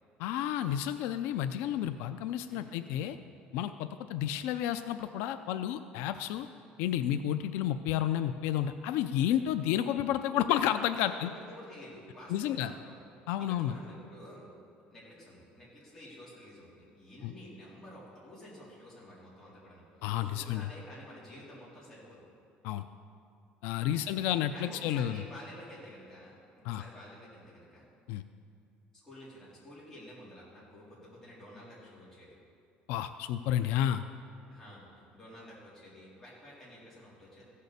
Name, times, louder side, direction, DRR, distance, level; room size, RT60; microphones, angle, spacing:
voice 1, 0.2-3.2 3.5-6.5 6.8-11.3 12.3-12.7 13.3-13.8 17.2-17.3 20.0-20.7 22.6-22.8 23.6-25.2 26.6-26.8 28.1-28.2 32.9-34.0, left 11 dB, 85° left, 10 dB, 0.4 m, -31 dB
voice 2, 2.5-3.2 10.9-13.0 13.4-14.4 14.9-19.8 20.2-22.2 23.7-24.2 24.5-27.9 29.0-32.4 34.5-34.9 35.1-37.5, left 1 dB, 15° left, -8 dB, 3.8 m, -50 dB
15.0 x 6.6 x 6.8 m, 2.4 s
cardioid pair, 165°, 4 cm